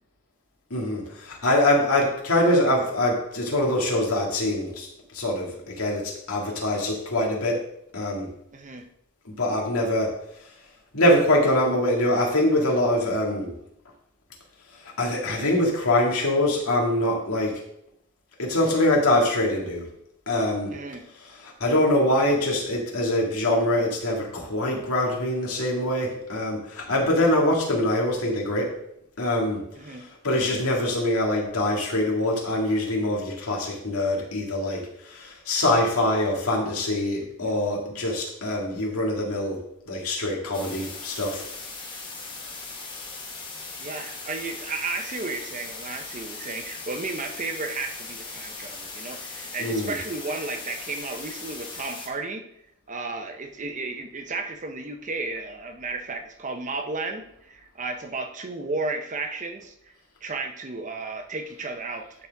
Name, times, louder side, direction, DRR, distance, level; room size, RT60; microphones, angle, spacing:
voice 1, 0.7-4.9 5.1-7.6 7.9-8.3 9.3-10.1 10.9-13.5 15.0-17.6 18.4-19.9 20.3-20.7 21.4-28.8 29.2-29.6 29.9-39.6 39.9-41.5 49.6-49.9, left 1 dB, 80° left, -1 dB, 2.0 m, -24 dB
voice 2, 8.5-8.9 20.7-21.0 29.8-30.0 37.2-37.6 43.8-52.4 52.9-59.7 60.2-62.3, right 3 dB, 35° right, 5 dB, 0.8 m, -33 dB
sound 1, 40.5-52.1, left 3 dB, 20° left, 1.3 m, -39 dB
11.5 x 4.2 x 3.5 m, 0.74 s
head